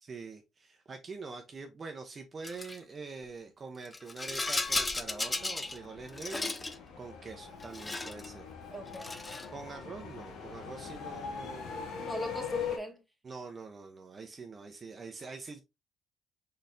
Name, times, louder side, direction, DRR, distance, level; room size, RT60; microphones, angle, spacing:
voice 1, 0.0-8.5 9.5-12.0 13.2-15.6, right 4 dB, 40° right, 0.7 m, -45 dB
Rattle, 2.4-2.8 3.8-5.8 6.1-6.8 7.6-8.3 8.9-9.5, left 2 dB, 20° left, 0.5 m, -35 dB
sound 1, 4.6-12.8, left 6 dB, 75° left, 0.7 m, -42 dB
voice 2, 8.7-9.2 11.9-13.0, left 1 dB, 5° right, 1.3 m, -39 dB
4.1 x 3.2 x 2.6 m
supercardioid pair, 70°, 0 cm